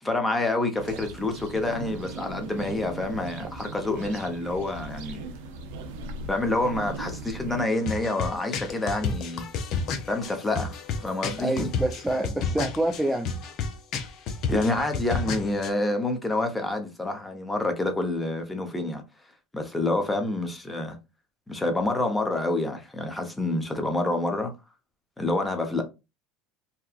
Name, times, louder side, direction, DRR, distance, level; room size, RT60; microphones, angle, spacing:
voice 1, 0.0-5.2 6.2-9.4 10.1-11.7 14.5-19.0 19.5-21.0 21.5-24.5 25.2-25.8, left 2 dB, 15° left, 0.8 m, -28 dB
sound 1, 0.7-7.6, right 3 dB, 75° right, 0.5 m, -38 dB
sound 2, 7.7-15.7, left 4 dB, 55° left, 0.5 m, -32 dB
voice 2, 11.4-13.3, right 1 dB, 10° right, 0.4 m, -27 dB
2.8 x 2.3 x 2.4 m
hypercardioid pair, 90°, 0 cm